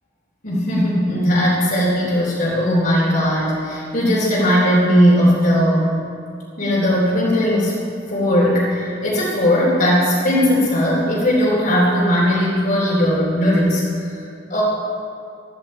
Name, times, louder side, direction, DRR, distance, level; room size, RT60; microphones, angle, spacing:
voice 1, 0.4-5.9 6.6-7.7 8.1-14.1 14.5-14.6, equal, 50° left, -8 dB, 3.9 m, -18 dB
16.5 x 14.0 x 4.5 m, 2.5 s
head